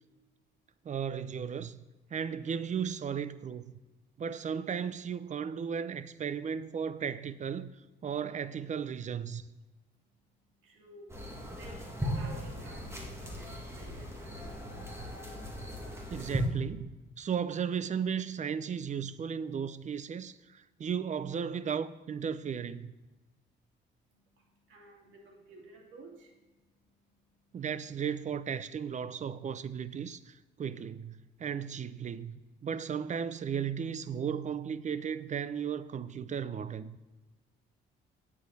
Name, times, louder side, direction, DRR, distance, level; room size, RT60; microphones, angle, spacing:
voice 1, 0.8-1.8 2.1-3.7 4.2-7.7 8.0-9.4 16.1-22.9 27.5-32.4 32.6-37.0, right 7 dB, 40° right, 0.5 m, -35 dB
voice 2, 10.6-11.2 11.5-14.9 24.1-27.6, right 2 dB, 75° right, 2.4 m, -55 dB
sound 1, 11.1-16.5, equal, 15° right, 2.1 m, -38 dB
9.6 x 8.6 x 4.0 m
cardioid pair, 90°, 20 cm